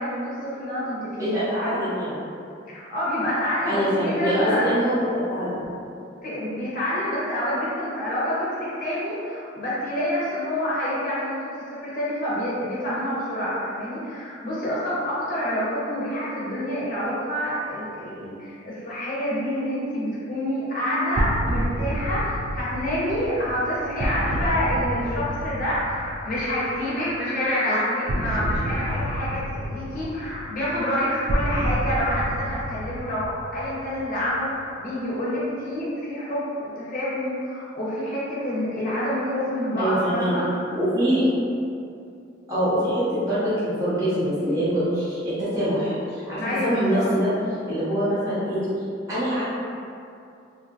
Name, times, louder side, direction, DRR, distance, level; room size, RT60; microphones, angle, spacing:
voice 1, 0.0-1.8 2.7-4.7 6.2-40.4 46.4-47.0, equal, 45° left, -8 dB, 0.8 m, -27 dB
voice 2, 1.2-2.3 3.7-5.0 5.3-5.6 24.2-24.6 39.8-40.3 40.7-41.3 42.5-47.3 47.7-48.7 49.1-49.4, equal, 15° right, -14 dB, 0.7 m, -24 dB
sound 1, 21.2-26.9 28.1-34.4, equal, 50° right, 0.3 m, -29 dB
2.7 x 2.6 x 2.4 m, 2.5 s
head